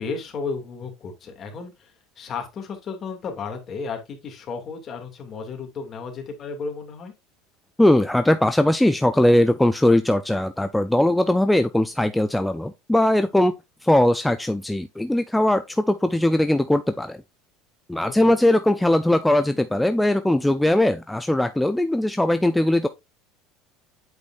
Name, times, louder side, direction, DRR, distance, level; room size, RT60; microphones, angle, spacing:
voice 1, 0.0-7.1 18.2-18.4, left 5 dB, 40° left, 2.3 m, -33 dB
voice 2, 7.8-13.5 13.8-17.2 17.9-22.9, left 1 dB, 5° left, 0.5 m, -20 dB
8.2 x 5.0 x 2.5 m
supercardioid pair, 110°, 0 cm